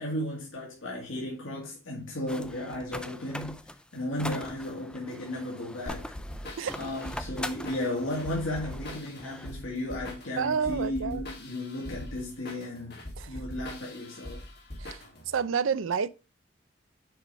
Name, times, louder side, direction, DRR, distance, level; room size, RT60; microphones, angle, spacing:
voice 1, 0.0-3.6 3.9-6.1 6.7-13.0 13.3-14.5, left 1 dB, 85° left, 2.1 m, -34 dB
sound 1, 2.3-9.6 10.0-10.2, left 1 dB, 5° left, 0.3 m, -42 dB
sound 2, 5.9-15.4, left 1 dB, 55° left, 2.0 m, -42 dB
voice 2, 10.4-11.2 13.2-13.3 14.8-15.0 15.3-16.1, right 6 dB, 80° right, 0.5 m, -29 dB
6.4 x 4.8 x 4.1 m
head